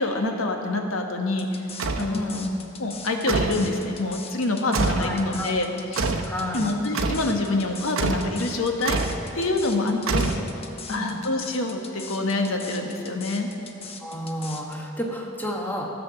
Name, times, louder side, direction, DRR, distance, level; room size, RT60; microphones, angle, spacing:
voice 1, 0.0-1.6 2.0-2.5 2.8-6.0 6.5-9.0 9.3-10.3 10.9-13.5, left 2 dB, 85° left, 3 dB, 1.2 m, -26 dB
sound 1, 1.4-14.7, left 5 dB, 30° left, 0.8 m, -41 dB
sound 2, 1.8-2.1 3.3-3.7 4.7-5.1 6.0-6.3 6.9-7.3 8.0-8.3 8.8-9.2 10.1-10.7, right 3 dB, 85° right, 0.8 m, -25 dB
voice 2, 2.1-2.5 5.0-5.5 6.3-6.7 9.8-10.2 10.6-11.2 14.0-15.9, left 1 dB, 10° left, -1 dB, 1.1 m, -31 dB
14.0 x 6.8 x 6.9 m, 2.7 s
head